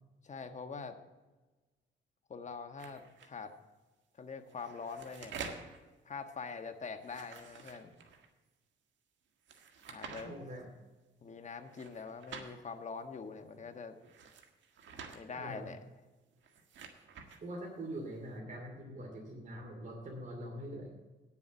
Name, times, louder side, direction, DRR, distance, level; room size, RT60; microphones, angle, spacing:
voice 1, 0.2-1.0 2.3-3.5 4.2-5.4 6.0-8.0 9.9-10.3 11.2-13.9 15.1-15.8, left 5 dB, 35° left, 7 dB, 1.4 m, -44 dB
sound 1, 2.8-3.3 4.4-5.8 7.0-8.3 9.5-10.2 11.7-12.5 14.0-15.2 16.3-17.4, right 5 dB, 70° right, 1.8 m, -48 dB
voice 2, 10.2-10.7 15.4-15.7 17.4-20.9, right 1 dB, 40° right, -1 dB, 2.6 m, -43 dB
9.3 x 7.2 x 8.1 m, 1.2 s
cardioid pair, 90°, 20 cm